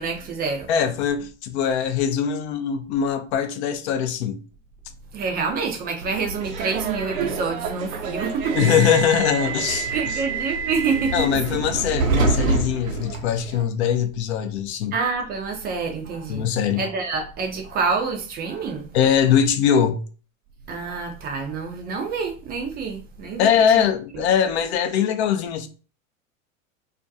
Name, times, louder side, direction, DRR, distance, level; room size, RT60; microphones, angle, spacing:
voice 1, 0.0-0.7 5.1-8.6 9.7-11.6 14.9-16.5 16.8-18.9 20.7-23.8 24.1-24.2, right 5 dB, 25° right, 0.4 m, -27 dB
voice 2, 0.7-4.4 8.5-10.2 11.1-14.9 16.3-16.8 18.9-20.0 23.4-25.7, left 8 dB, 55° left, 0.5 m, -22 dB
Subway metro underground, 6.0-13.6, right 4 dB, 80° right, 0.7 m, -27 dB
2.3 x 2.2 x 2.6 m
hypercardioid pair, 90°, 41 cm